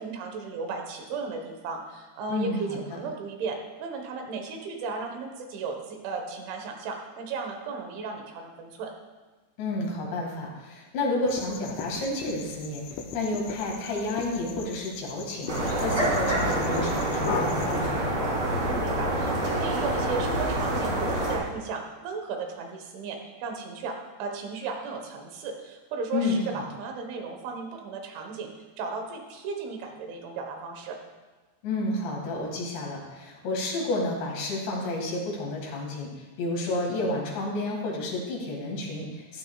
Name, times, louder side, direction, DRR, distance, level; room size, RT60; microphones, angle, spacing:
voice 1, 0.0-8.9 18.6-28.5 28.8-31.0, right 4 dB, 85° right, 3 dB, 3.7 m, -35 dB
voice 2, 2.3-2.8 9.6-12.8 13.1-15.5 15.8-18.2 26.1-26.7 31.6-36.1 36.4-39.4, left 2 dB, 70° left, -1 dB, 4.2 m, -30 dB
sound 1, 11.3-17.8, left 5 dB, 90° left, 3.5 m, -38 dB
sound 2, 15.5-21.4, right 1 dB, 30° right, 2.1 m, -27 dB
14.5 x 12.5 x 2.4 m, 1.3 s
omnidirectional pair, 5.3 m